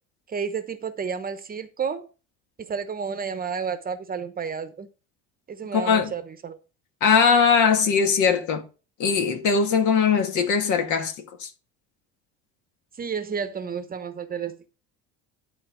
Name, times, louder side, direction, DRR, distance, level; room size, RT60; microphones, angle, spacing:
voice 1, 0.3-2.1 2.6-4.9 5.5-6.6 13.0-14.7, right 6 dB, 25° right, 1.0 m, -31 dB
voice 2, 5.7-6.1 7.0-8.6 9.0-11.1 11.4-11.5, left 6 dB, 60° left, 1.9 m, -20 dB
11.5 x 4.0 x 4.9 m
cardioid pair, 115°, 33 cm